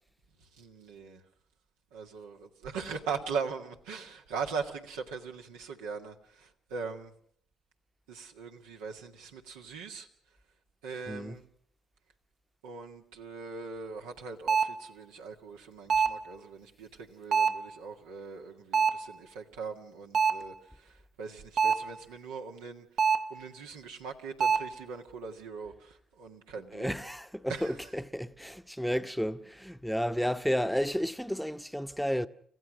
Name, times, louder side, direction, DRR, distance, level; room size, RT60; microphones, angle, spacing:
voice 1, 0.6-1.2 1.9-7.1 8.1-10.1 10.8-11.5 12.6-22.9 23.3-26.9 27.5-27.7, right 5 dB, 90° right, 1.7 m, -40 dB
voice 2, 11.1-11.4 26.7-32.3, equal, ahead, 0.9 m, -32 dB
sound 1, 14.5-14.8 15.9-16.3 17.3-17.7 18.7-19.1 20.1-20.5 21.6-22.0 23.0-23.4 24.4-24.8, right 6 dB, 60° right, 1.1 m, -26 dB
30.0 x 15.0 x 6.2 m
supercardioid pair, 60°, 0 cm